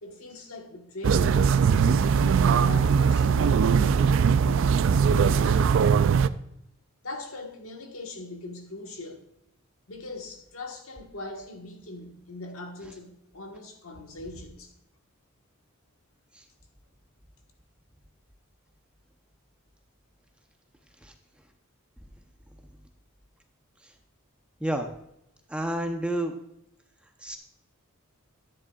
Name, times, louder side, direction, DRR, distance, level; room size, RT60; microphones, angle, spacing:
voice 1, 0.0-1.4 2.0-5.7 7.0-9.3 9.9-14.7, left 2 dB, 75° left, 1.4 m, -41 dB
sound 1, 1.0-6.3, right 6 dB, 60° right, 0.3 m, -21 dB
voice 2, 25.5-26.3 27.2-27.4, right 1 dB, 5° right, 0.7 m, -29 dB
11.5 x 9.8 x 2.4 m
head